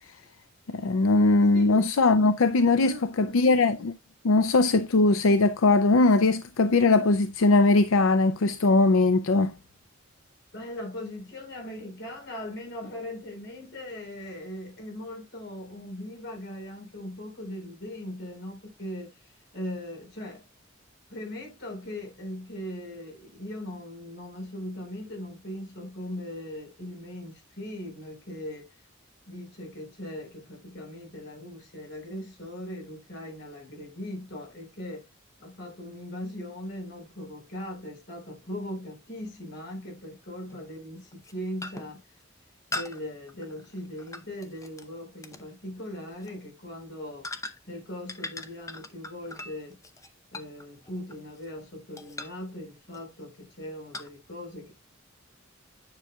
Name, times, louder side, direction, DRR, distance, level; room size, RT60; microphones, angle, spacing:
voice 1, 0.7-3.9 4.2-9.5, left 3 dB, 80° left, 0.5 m, -21 dB
voice 2, 1.5-1.9 2.8-3.4 10.5-20.4 21.1-28.7 29.3-35.1 35.4-42.0 42.7-47.3 47.7-49.8 50.3-54.7, left 1 dB, 60° left, 4.2 m, -39 dB
sound 1, 36.7-36.8 39.2-39.3 40.5-40.7 41.1-41.3 41.6-42.0 42.7-44.9 45.2-45.5 46.1-46.3 47.2-47.8 48.1-51.6 52.0-52.5 52.9-53.2 53.9-54.1, left 2 dB, 15° left, 0.7 m, -40 dB
9.6 x 6.0 x 2.3 m
head